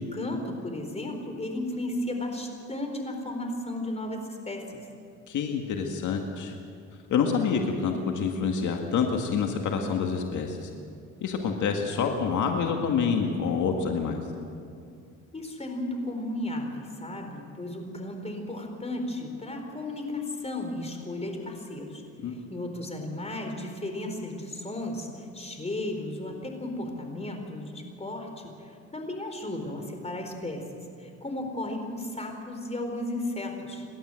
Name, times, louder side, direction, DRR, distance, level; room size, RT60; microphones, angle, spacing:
voice 1, 0.0-4.8 15.3-33.9, left 1 dB, 20° left, 4 dB, 4.3 m, -34 dB
voice 2, 5.3-6.6 7.1-10.7 11.2-14.2 22.2-22.4, left 6 dB, 75° left, 3 dB, 2.0 m, -27 dB
29.0 x 12.0 x 7.8 m, 2.4 s
cardioid pair, 90°, 30 cm